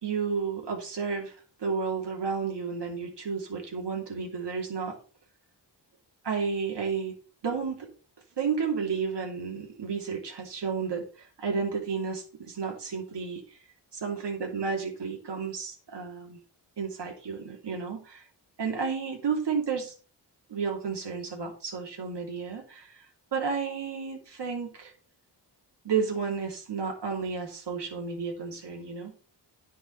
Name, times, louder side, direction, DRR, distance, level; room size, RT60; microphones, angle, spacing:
voice 1, 0.0-4.9 6.2-7.1 7.4-7.9 8.4-13.4 13.9-16.4 16.8-18.2 18.6-19.9 20.5-23.0 23.3-24.9 25.8-29.1, right 5 dB, 70° right, 1 dB, 3.0 m, -32 dB
10.0 x 5.6 x 5.8 m, 0.38 s
wide cardioid pair, 115°, 43 cm